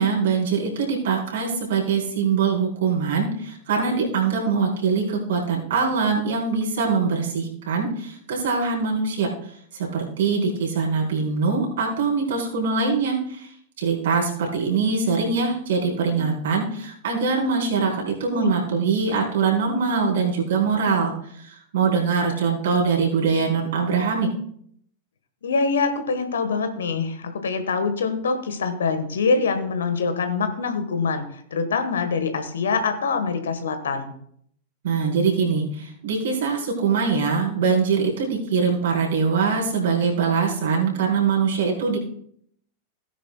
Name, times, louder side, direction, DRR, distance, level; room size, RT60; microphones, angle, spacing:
voice 1, 0.0-9.3 9.7-13.5 13.8-24.3 34.8-42.0, right 5 dB, 60° right, -2 dB, 4.1 m, -23 dB
voice 2, 25.4-31.2 31.5-34.1, left 4 dB, 65° left, 8 dB, 1.3 m, -24 dB
17.0 x 10.0 x 2.3 m, 0.66 s
figure-of-eight pair, 90°, 0 cm